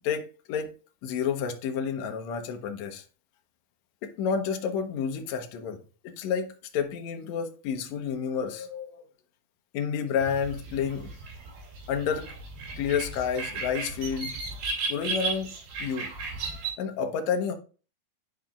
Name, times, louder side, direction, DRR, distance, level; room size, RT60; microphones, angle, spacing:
voice 1, 0.0-0.7 1.0-3.0 4.0-5.8 6.0-9.0 9.7-11.1 11.9-12.3 12.8-14.4 14.9-16.1 16.8-17.5, left 7 dB, 75° left, 1.6 m, -30 dB
sound 1, 10.2-16.7, right 3 dB, 85° right, 4.0 m, -35 dB
10.5 x 4.8 x 2.4 m
omnidirectional pair, 4.3 m